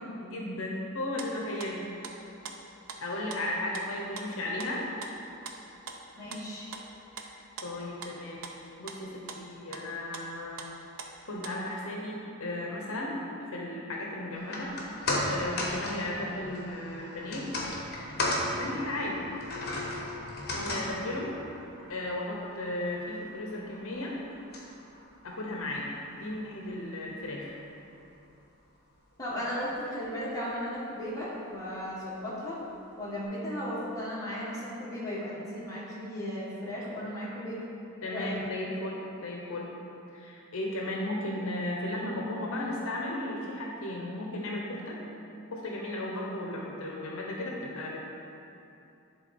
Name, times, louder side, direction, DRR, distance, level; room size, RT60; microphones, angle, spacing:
voice 1, 0.2-1.9 3.0-4.8 7.2-7.3 7.6-8.4 8.8-10.7 11.0-14.7 15.2-17.5 18.5-19.3 20.5-21.3 21.9-24.2 25.2-27.5 38.0-39.7 40.1-45.0 45.5-48.0, left 1 dB, 65° left, -1 dB, 0.8 m, -35 dB
sound 1, 0.9-1.3 1.6-2.2 2.4-3.0 3.3-3.9 4.2-9.0 9.3-9.4 9.7-9.8 10.1-11.7, right 5 dB, 65° right, 0.6 m, -43 dB
voice 2, 6.1-6.8 20.7-20.8 29.2-32.6 33.0-37.6 38.0-38.4, equal, 15° left, -8 dB, 1.7 m, -36 dB
sound 2, 14.4-26.7 27.1-27.2, left 1 dB, 45° left, 1.2 m, -36 dB
10.0 x 3.7 x 4.3 m, 2.8 s
head